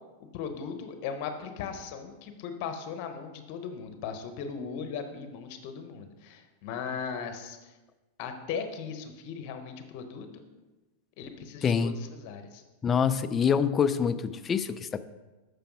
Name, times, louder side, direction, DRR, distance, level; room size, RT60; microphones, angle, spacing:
voice 1, 0.3-7.7 8.2-10.4 11.2-12.6, left 6 dB, 55° left, 7 dB, 1.0 m, -38 dB
voice 2, 11.6-12.0 12.8-15.0, left 7 dB, 25° left, 13 dB, 0.4 m, -26 dB
6.8 x 5.1 x 4.7 m, 1.1 s
hypercardioid pair, 115°, 0 cm